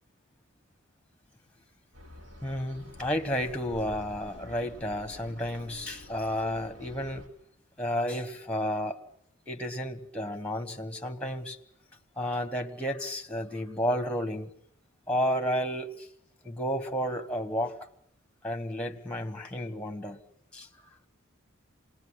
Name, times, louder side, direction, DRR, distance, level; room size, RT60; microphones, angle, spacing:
sound 1, 1.9-7.3, left 1 dB, 70° right, 6.4 m, -49 dB
voice 1, 2.4-7.3 7.8-9.0 9.5-11.6 12.2-14.5 15.1-16.1 16.4-17.8 18.4-20.2 20.5-20.7, equal, 5° left, 6 dB, 1.6 m, -32 dB
27.0 x 20.0 x 9.9 m, 0.72 s
head